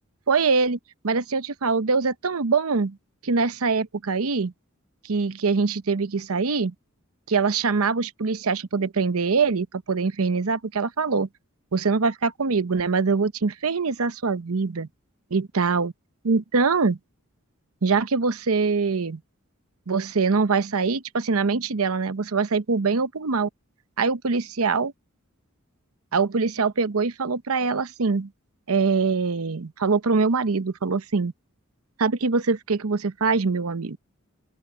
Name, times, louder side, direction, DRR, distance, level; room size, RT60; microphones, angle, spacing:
voice 1, 0.3-0.8 1.0-3.0 3.2-4.5 5.0-6.7 7.3-11.3 11.7-14.9 15.3-15.9 16.2-17.0 17.8-19.2 19.9-23.5 24.0-24.9 26.1-28.3 28.7-31.3 32.0-34.0, right 4 dB, 85° right, 0.8 m, -23 dB
open air
head